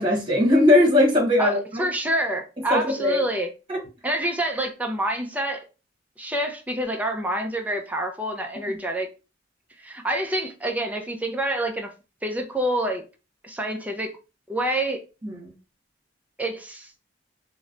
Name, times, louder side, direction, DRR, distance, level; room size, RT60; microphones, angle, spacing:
voice 1, 0.0-1.8 2.7-3.2 3.7-3.8 15.2-15.5, left 1 dB, 25° right, 1.3 m, -19 dB
voice 2, 1.4-3.5 4.0-5.6 6.2-9.1 9.8-11.9 12.2-13.0 13.4-14.1 14.5-15.0 16.4-16.9, right 1 dB, 10° right, 0.5 m, -27 dB
3.0 x 2.1 x 3.8 m
head